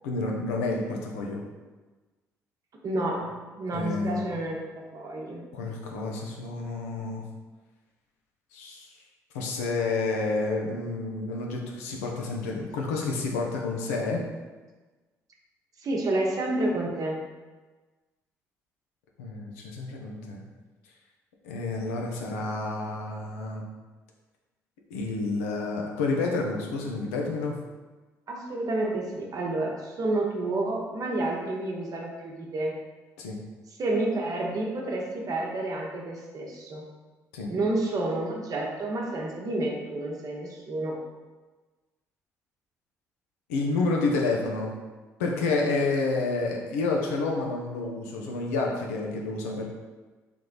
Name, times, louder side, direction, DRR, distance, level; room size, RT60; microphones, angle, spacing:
voice 1, 0.0-1.4 3.7-4.2 5.5-7.2 8.5-8.9 9.3-14.2 19.2-20.4 21.4-23.6 24.9-27.5 33.2-33.4 37.3-37.5 43.5-44.7 45.2-49.7, left 3 dB, 80° left, 0 dB, 0.6 m, -29 dB
voice 2, 2.8-3.3 3.6-5.4 15.8-17.2 28.3-32.7 33.8-36.8 37.5-41.0, right 2 dB, 50° right, -1 dB, 1.0 m, -29 dB
3.4 x 3.2 x 3.9 m, 1.3 s
hypercardioid pair, 50°, 8 cm